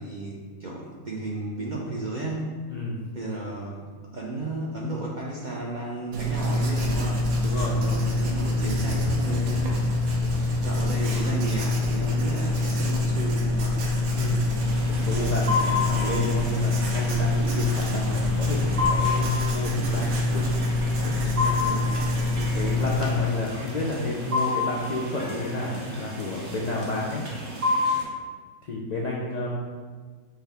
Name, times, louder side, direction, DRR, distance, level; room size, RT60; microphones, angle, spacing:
voice 1, 0.0-2.6 3.1-7.2 8.1-9.8 10.6-13.9 21.6-22.1, right 2 dB, 60° right, -4 dB, 0.4 m, -33 dB
voice 2, 2.7-3.0 7.4-8.0 14.1-14.5 14.9-20.5 21.0-21.8 22.5-27.3 27.7-27.8 28.7-29.6, left 2 dB, 80° left, -4 dB, 0.3 m, -30 dB
Writing, 6.1-23.2, left 2 dB, 80° right, 1.2 m, -25 dB
sound 1, 14.6-28.0, left 3 dB, 45° right, 0.9 m, -31 dB
5.8 x 2.7 x 3.3 m, 1.5 s
omnidirectional pair, 1.4 m